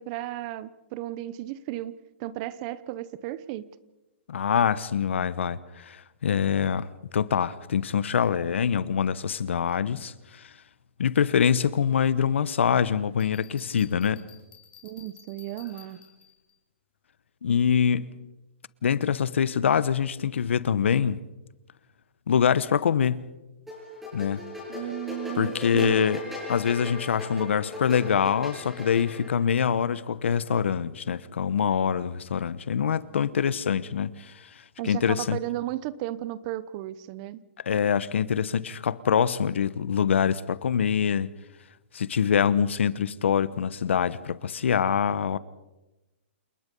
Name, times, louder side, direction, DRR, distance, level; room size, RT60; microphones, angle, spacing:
voice 1, 0.0-3.7 14.8-16.0 24.7-26.0 34.8-37.4, right 14 dB, 35° right, 0.9 m, -34 dB
voice 2, 4.3-6.9 7.1-10.5 11.0-14.2 17.4-18.1 18.8-21.2 22.3-23.3 24.1-24.5 25.4-26.2 26.5-34.5 34.8-35.4 37.6-41.3 41.9-45.4, left 7 dB, 80° left, 1.0 m, -24 dB
Bell, 13.2-16.5, left 9 dB, 60° left, 5.0 m, -53 dB
Kim Melody, 23.7-29.3, left 2 dB, 5° right, 7.2 m, -37 dB
29.0 x 19.0 x 5.4 m
hypercardioid pair, 150°, 6 cm